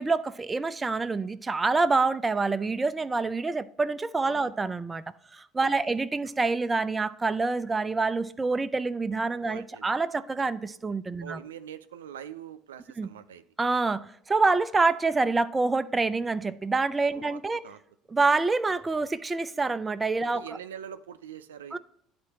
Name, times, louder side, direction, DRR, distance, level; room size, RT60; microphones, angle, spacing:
voice 1, 0.0-5.0 5.3-11.4 13.0-13.1 13.6-17.6 18.1-20.4 21.7-21.8, right 3 dB, 20° right, 0.4 m, -26 dB
voice 2, 4.2-4.5 5.8-6.0 9.4-9.9 11.2-13.4 17.1-17.8 20.2-21.8, right 9 dB, 85° right, 0.4 m, -43 dB
11.0 x 4.3 x 2.9 m
hypercardioid pair, 70°, 0 cm